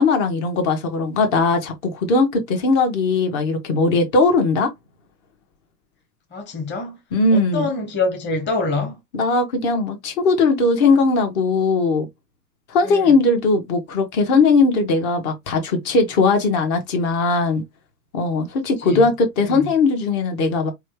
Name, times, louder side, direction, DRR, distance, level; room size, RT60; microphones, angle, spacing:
voice 1, 0.0-4.7 7.1-7.7 9.1-12.1 12.7-17.6 18.1-20.7, left 3 dB, 50° left, 1.2 m, -19 dB
voice 2, 6.3-7.0 7.3-9.0 12.8-13.1 18.8-19.0 19.4-19.7, left 3 dB, 20° left, 1.0 m, -25 dB
3.1 x 2.3 x 3.1 m
hypercardioid pair, 100°, 48 cm